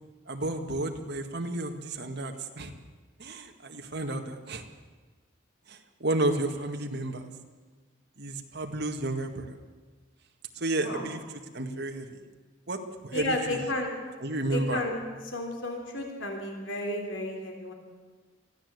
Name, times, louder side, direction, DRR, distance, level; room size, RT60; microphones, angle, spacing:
voice 1, 0.3-2.7 3.2-4.6 5.7-7.3 8.2-9.6 10.5-11.2 11.5-12.2 12.7-13.7 14.2-14.8, right 2 dB, 55° right, 4 dB, 2.0 m, -32 dB
voice 2, 13.1-13.9 14.5-15.0 15.3-17.7, left 1 dB, 70° left, 2 dB, 3.5 m, -32 dB
23.5 x 15.0 x 8.2 m, 1.4 s
head